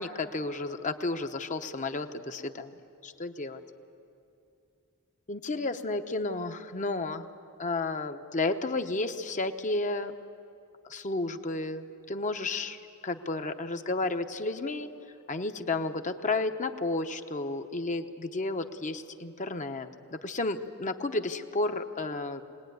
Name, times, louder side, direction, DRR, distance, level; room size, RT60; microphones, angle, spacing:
voice 1, 0.0-2.7 3.0-3.6 5.3-7.3 7.6-10.1 10.9-14.9 15.3-22.4, left 2 dB, 35° left, 7 dB, 0.9 m, -32 dB
23.5 x 19.5 x 9.4 m, 2.6 s
head